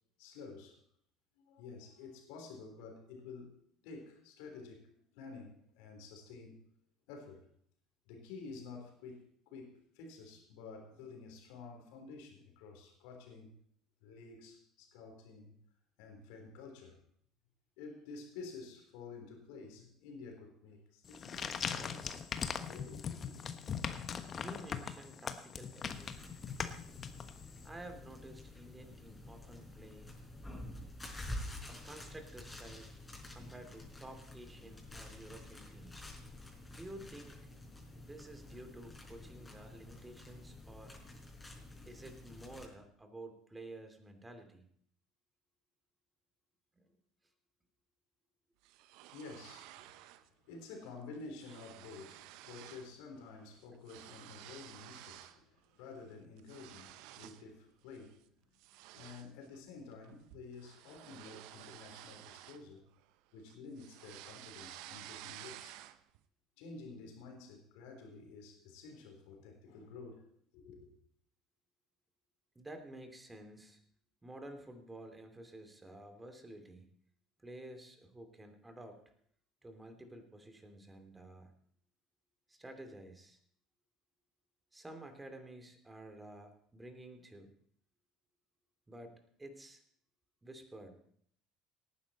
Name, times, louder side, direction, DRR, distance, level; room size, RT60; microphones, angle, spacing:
voice 1, 0.2-0.8 1.4-3.5 3.8-6.6 7.1-7.5 8.1-13.5 14.0-15.5 16.0-17.0 17.8-22.2 22.7-23.4 49.1-49.8 50.5-58.3 58.9-62.9 63.3-65.8 66.6-70.2 70.5-70.9, left 4 dB, 70° left, 3.6 m, -51 dB
sound 1, 21.0-27.6, left 7 dB, 40° left, 1.2 m, -40 dB
voice 2, 24.4-26.4 27.6-30.7 31.7-32.9 33.3-36.1 36.7-37.4 37.9-41.0 41.9-44.6 46.7-46.9 72.5-73.8 74.2-76.9 77.4-79.0 79.6-81.5 82.5-83.4 84.7-87.5 88.9-89.8 90.4-91.0, right 1 dB, 15° right, 2.8 m, -51 dB
sound 2, 25.8-42.7, left 1 dB, 15° left, 5.2 m, -49 dB
sound 3, 48.6-50.3 50.6-50.9 51.1-53.0 53.2-55.4 55.8-57.5 57.9-58.2 58.6-63.1 63.5-66.2, right 14 dB, 70° right, 0.7 m, -53 dB
18.0 x 9.8 x 4.2 m
hypercardioid pair, 65°, 0 cm